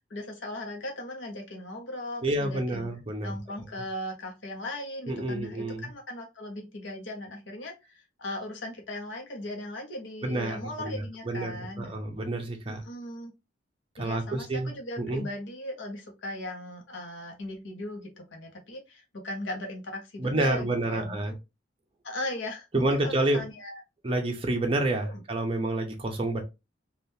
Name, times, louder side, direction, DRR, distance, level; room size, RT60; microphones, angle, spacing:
voice 1, 0.1-2.9 3.2-7.7 8.2-12.0 12.7-13.3 14.0-21.4 22.0-23.8 25.0-25.1, left 1 dB, 70° left, 0.9 m, -38 dB
voice 2, 2.2-3.4 5.1-5.9 10.2-12.8 14.0-15.3 20.2-21.3 22.7-23.4 24.0-26.4, right 2 dB, 30° right, 0.6 m, -29 dB
3.5 x 2.4 x 2.7 m
head